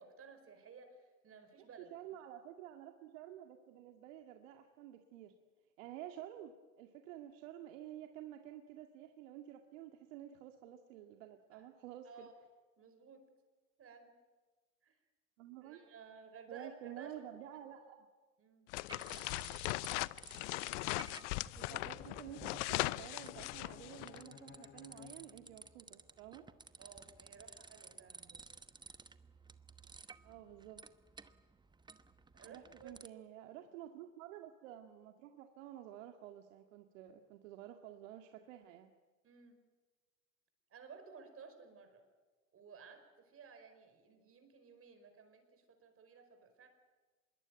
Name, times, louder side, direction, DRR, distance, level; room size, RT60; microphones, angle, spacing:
voice 1, 0.0-2.1 11.5-11.7 12.0-12.4 12.8-13.2 13.8-14.2 14.8-14.9 15.6-17.1 17.4-17.6 18.4-18.7 26.8-28.4 32.3-33.3 39.2-39.6 40.7-42.0 42.5-46.7, right 5 dB, 30° right, 7 dB, 5.0 m, -56 dB
voice 2, 1.6-5.3 5.8-12.3 15.4-15.8 16.5-18.1 21.6-26.4 30.2-30.8 32.5-38.9, right 11 dB, 65° right, 5 dB, 2.1 m, -51 dB
sound 1, 18.7-24.2, left 21 dB, 60° left, 0.8 m, -39 dB
sound 2, 18.9-19.9 20.2-33.1, right 4 dB, 10° right, 1.0 m, -56 dB
Bowed string instrument, 21.7-25.8, left 10 dB, 25° left, 0.9 m, -57 dB
25.5 x 22.0 x 9.2 m, 1.3 s
hypercardioid pair, 100°, 42 cm